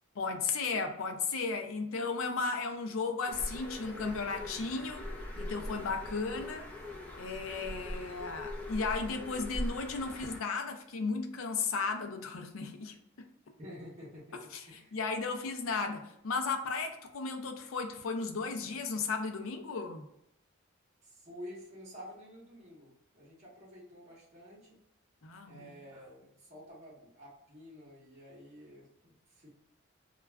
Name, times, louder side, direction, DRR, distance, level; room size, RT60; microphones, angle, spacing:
voice 1, 0.2-5.1 5.4-6.7 7.2-13.0 14.5-20.1 25.2-25.7, left 4 dB, 80° left, 5 dB, 0.5 m, -35 dB
Bird, 3.3-10.4, left 1 dB, 5° left, 0.5 m, -41 dB
voice 2, 13.6-15.0 21.0-24.8 25.4-29.5, equal, 35° right, -7 dB, 0.9 m, -50 dB
2.3 x 2.3 x 3.2 m, 0.80 s
head